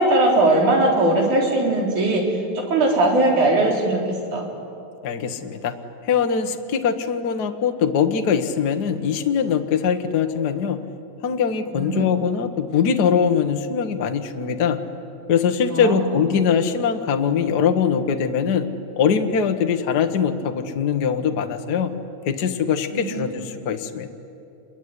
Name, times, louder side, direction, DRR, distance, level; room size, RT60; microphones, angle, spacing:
voice 1, 0.0-2.2 2.6-4.0 4.3-4.5 11.7-12.1 15.7-16.0 16.3-16.4 22.9-23.3, right 2 dB, 55° right, 0 dB, 5.2 m, -19 dB
voice 2, 5.0-5.7 6.0-10.8 11.2-14.8 15.3-18.7 19.0-21.9 22.2-24.1, left 7 dB, 85° left, 6 dB, 0.8 m, -22 dB
27.0 x 22.5 x 9.8 m, 2.8 s
omnidirectional pair, 4.1 m